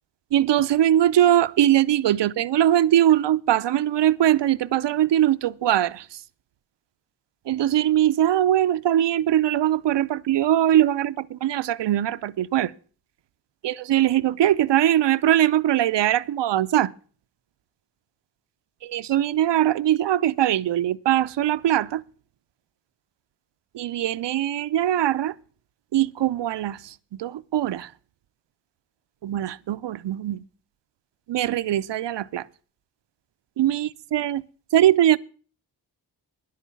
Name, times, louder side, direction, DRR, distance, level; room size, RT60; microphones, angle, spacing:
voice 1, 0.3-6.0 7.5-12.7 13.6-16.9 18.8-22.0 23.7-25.3 25.9-26.9 27.2-27.9 29.2-30.4 31.3-32.4 33.6-34.4 34.7-35.2, right 12 dB, 85° right, 0.6 m, -21 dB
11.0 x 8.5 x 6.9 m
wide cardioid pair, 180°, 41 cm